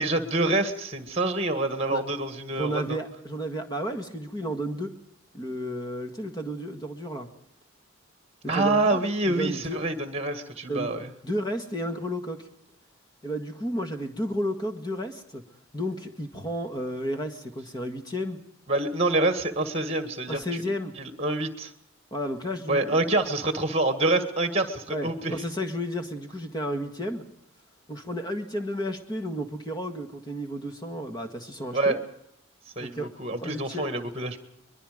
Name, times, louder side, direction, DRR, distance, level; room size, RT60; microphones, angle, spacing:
voice 1, 0.0-3.0 8.5-11.1 18.7-20.4 21.0-21.7 22.7-25.3 31.7-32.0 32.8-34.4, right 2 dB, 25° right, 7 dB, 1.8 m, -26 dB
voice 2, 2.5-4.9 5.3-7.3 8.5-9.8 10.7-12.5 13.2-15.4 15.7-18.4 20.3-20.9 22.1-23.2 24.9-27.3 27.9-32.0 32.8-33.2 33.4-33.8, equal, 20° left, 5 dB, 1.7 m, -32 dB
23.0 x 22.0 x 5.1 m, 0.77 s
head